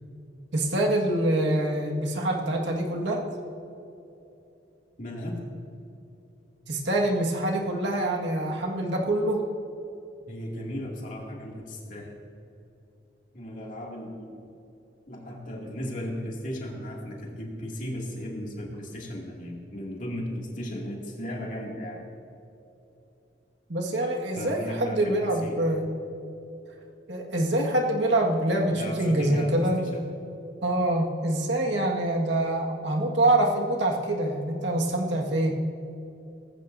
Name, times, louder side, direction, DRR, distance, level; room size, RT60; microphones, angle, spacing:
voice 1, 0.5-3.3 6.7-9.4 23.7-25.8 27.1-29.8 30.6-35.5, right 1 dB, 80° right, 0 dB, 1.8 m, -25 dB
voice 2, 5.0-5.4 10.3-12.1 13.3-14.4 15.1-22.0 24.4-25.6 28.7-30.1, equal, 45° left, -2 dB, 2.5 m, -36 dB
18.5 x 15.0 x 2.7 m, 2.9 s
head